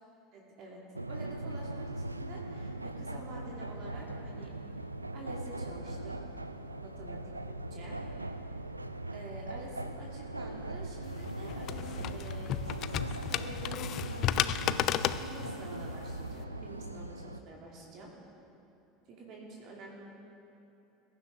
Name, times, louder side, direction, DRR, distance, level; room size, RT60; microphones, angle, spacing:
voice 1, 0.3-4.5 5.1-6.2 6.8-7.2 7.7-8.0 9.1-14.6 15.2-18.1 19.1-20.0, right 2 dB, 45° right, -2 dB, 2.5 m, -48 dB
sound 1, 0.9-17.4, right 2 dB, 85° right, 0.3 m, -40 dB
sound 2, 1.5-17.1, equal, 10° left, 3.4 m, -54 dB
sound 3, 11.0-16.4, left 11 dB, 45° left, 0.4 m, -34 dB
21.5 x 10.5 x 3.5 m, 2.9 s
figure-of-eight pair, 70°, 0 cm